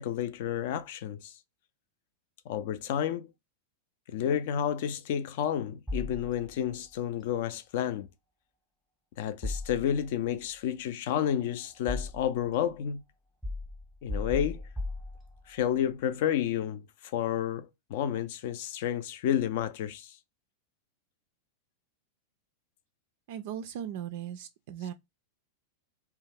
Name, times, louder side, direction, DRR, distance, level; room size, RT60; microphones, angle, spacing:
voice 1, 0.0-1.3 2.5-3.3 4.1-8.1 9.2-13.0 14.0-14.6 15.5-16.9 17.1-20.2, left 9 dB, 50° left, 0.4 m, -30 dB
sound 1, 5.9-6.8 9.4-10.3 11.2-12.5 13.4-15.7, left 2 dB, 5° left, 0.7 m, -37 dB
voice 2, 23.3-24.9, right 9 dB, 50° right, 0.3 m, -38 dB
2.6 x 2.2 x 3.2 m
figure-of-eight pair, 90°, 0 cm